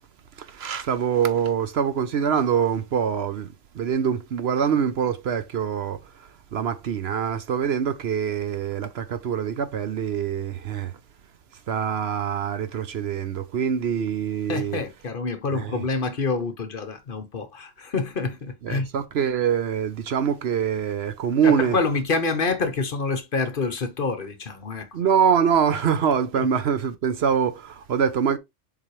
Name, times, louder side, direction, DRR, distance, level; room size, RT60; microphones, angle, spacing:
voice 1, 0.4-11.0 11.7-14.8 15.5-15.8 18.6-21.8 24.9-28.4, right 7 dB, 60° right, 0.9 m, -24 dB
voice 2, 14.5-18.9 21.4-24.9 26.3-26.5, left 4 dB, 50° left, 1.0 m, -27 dB
7.3 x 4.1 x 3.1 m
omnidirectional pair, 1.3 m